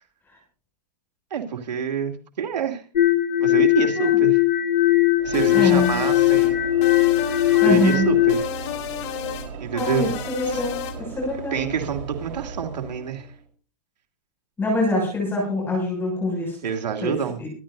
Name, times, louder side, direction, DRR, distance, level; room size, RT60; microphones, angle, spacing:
voice 1, 1.3-2.8 3.4-4.4 5.2-6.6 7.6-8.5 9.6-10.1 10.4-10.6 11.5-13.3 16.6-17.4, right 8 dB, 85° right, 4 dB, 2.9 m, -27 dB
sound 1, 3.0-8.4, left 15 dB, 90° left, 2.5 m, -19 dB
Train / Engine / Alarm, 5.2-13.4, right 5 dB, 50° right, 4.5 m, -37 dB
sound 2, 5.3-6.5 6.8-8.0 8.3-9.5 9.8-11.0, left 10 dB, 40° left, 2.2 m, -32 dB
voice 2, 5.5-5.9 7.6-8.1 9.7-11.7 14.6-16.6 17.0-17.1 17.4-17.5, left 1 dB, 10° left, -2 dB, 7.1 m, -24 dB
25.0 x 11.5 x 2.8 m, 0.40 s
hypercardioid pair, 150°, 21 cm